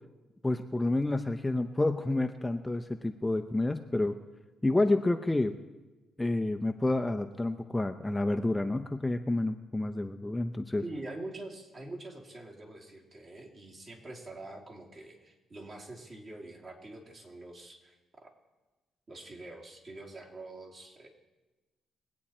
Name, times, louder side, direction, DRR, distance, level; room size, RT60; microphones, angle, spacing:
voice 1, 0.4-4.2 4.6-5.6 6.2-10.8, left 2 dB, 15° left, 7 dB, 0.6 m, -29 dB
voice 2, 10.8-18.3 19.1-21.1, right 2 dB, 40° right, -1 dB, 2.8 m, -45 dB
22.0 x 8.4 x 4.4 m, 1.2 s
cardioid pair, 90°, 0 cm